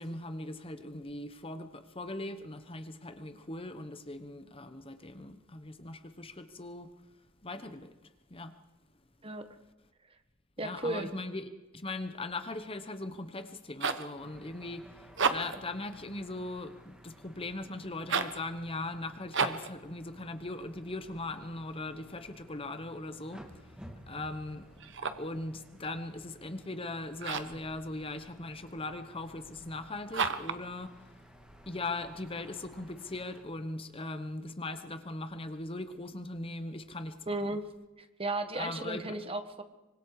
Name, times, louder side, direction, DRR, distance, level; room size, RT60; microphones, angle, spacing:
voice 1, 0.0-6.9 7.4-7.9 8.3-8.5 10.6-23.8 24.1-24.9 25.2-31.2 31.7-37.6 38.5-39.1, left 2 dB, 25° left, 9 dB, 1.1 m, -40 dB
voice 2, 10.6-11.1 37.3-37.6 38.0-39.6, right 2 dB, 25° right, 8 dB, 1.5 m, -34 dB
sound 1, 13.5-14.1 15.0-15.7 18.0-18.4 19.3-19.7 24.8-25.3 27.2-27.6 30.1-30.6, right 5 dB, 55° right, 1.4 m, -32 dB
sound 2, 14.2-33.4, equal, 5° right, 2.6 m, -55 dB
25.5 x 25.0 x 4.9 m, 1.1 s
head